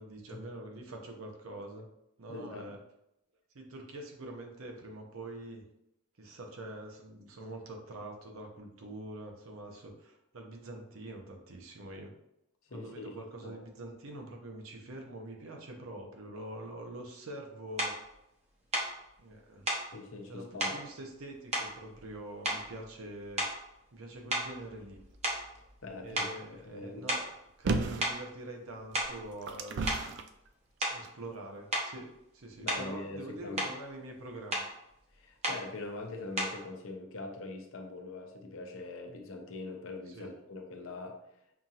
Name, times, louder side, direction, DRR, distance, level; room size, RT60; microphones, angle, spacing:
voice 1, 0.0-1.9 2.2-2.8 3.5-5.7 6.2-12.1 12.7-17.9 19.2-19.8 20.3-23.4 23.9-25.0 26.0-27.2 27.6-29.9 30.8-32.1 32.3-34.7 40.1-40.3, right 1 dB, 85° right, 2 dB, 0.8 m, -45 dB
voice 2, 2.3-2.8 12.7-13.1 13.4-13.6 19.9-20.8 25.8-27.0 32.6-33.7 35.1-41.2, left 3 dB, 75° left, 3 dB, 0.7 m, -43 dB
sound 1, 17.8-18.0 18.7-18.9 19.7-19.9 20.6-20.8 21.5-22.1 22.4-22.8 23.3-23.7 24.3-25.9 26.1-26.4 27.1-27.3 28.0-28.2 28.8-29.2 29.9-30.1 30.8-31.1 31.7-31.9 32.7-33.0 33.3-33.8 34.5-34.7 35.4-35.7 36.4-36.6, right 1 dB, 30° right, 0.8 m, -33 dB
sound 2, 27.7-28.1 28.9-30.3 31.0-31.1, right 3 dB, 55° right, 0.3 m, -33 dB
5.8 x 2.8 x 2.5 m, 0.82 s
head